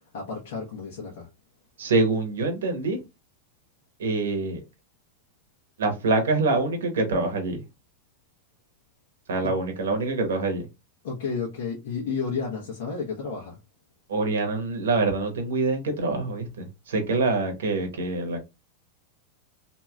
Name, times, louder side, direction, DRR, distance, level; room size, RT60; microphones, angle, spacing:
voice 1, 0.1-1.3 9.4-9.5 11.0-13.6, left 5 dB, 70° left, 1.0 m, -31 dB
voice 2, 1.8-3.0 4.0-4.6 5.8-7.6 9.3-10.6 14.1-18.4, right 3 dB, 85° right, 0.9 m, -25 dB
3.0 x 2.7 x 2.4 m
hypercardioid pair, 120°, 0 cm